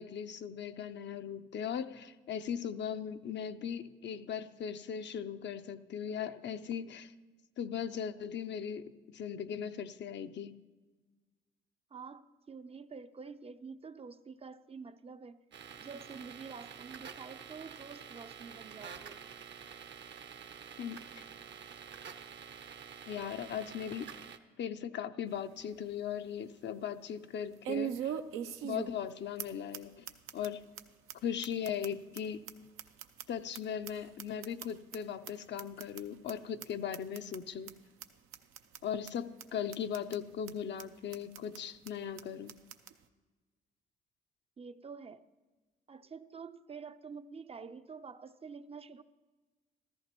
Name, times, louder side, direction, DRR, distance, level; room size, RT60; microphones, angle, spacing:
voice 1, 0.0-7.1 7.6-10.5 20.8-21.3 23.1-24.1 24.6-28.2 28.6-30.1 30.3-30.6 31.2-32.4 33.3-37.7 38.8-42.5, left 8 dB, 60° left, 10 dB, 0.5 m, -38 dB
voice 2, 11.9-15.4 15.8-19.2 44.6-45.3 45.9-49.0, right 5 dB, 30° right, 11 dB, 0.4 m, -48 dB
sound 1, 15.5-24.4, right 7 dB, 60° right, 0.7 m, -48 dB
sound 2, 25.3-25.4 25.8-25.9 27.6-29.1 29.4-29.5 29.7-29.8 30.1-30.5 30.8-30.9 31.1-31.2 31.4-33.6 33.8-35.0 35.2-35.3 35.6-36.0 36.3-36.4 36.6-36.7 36.9-37.4 37.7-37.8 38.0-38.1 38.3-38.8 39.1-39.2 39.4-39.5 39.7-40.2 40.5-40.6 40.8-40.9 41.1-41.6 41.9-42.0 42.2-42.3 42.5-42.9, right 9 dB, 90° right, 0.6 m, -40 dB
14.0 x 13.5 x 3.0 m, 1.3 s
supercardioid pair, 65°, 21 cm